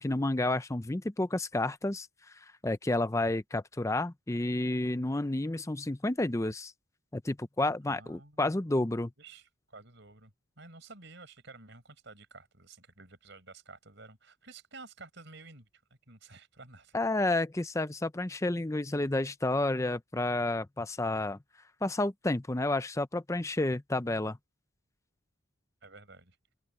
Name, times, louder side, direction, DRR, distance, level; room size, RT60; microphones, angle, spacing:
voice 1, 0.0-6.7 7.1-9.1 16.9-21.4 21.8-24.4, left 2 dB, 15° left, 0.5 m, -30 dB
voice 2, 7.9-8.5 9.2-10.3 10.6-15.7 16.1-17.0 25.8-26.4, right 3 dB, 60° right, 6.0 m, -51 dB
open air
head